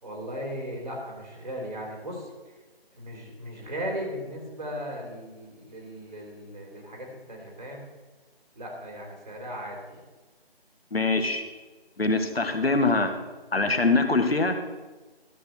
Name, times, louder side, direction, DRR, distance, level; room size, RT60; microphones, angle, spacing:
voice 1, 0.0-2.6 2.9-7.9 8.6-10.0, equal, 50° right, -1 dB, 3.6 m, -37 dB
voice 2, 10.9-11.4 12.0-13.1 13.5-14.5, left 3 dB, 75° left, 7 dB, 1.3 m, -23 dB
13.0 x 4.5 x 6.7 m, 1.2 s
figure-of-eight pair, 160°, 30 cm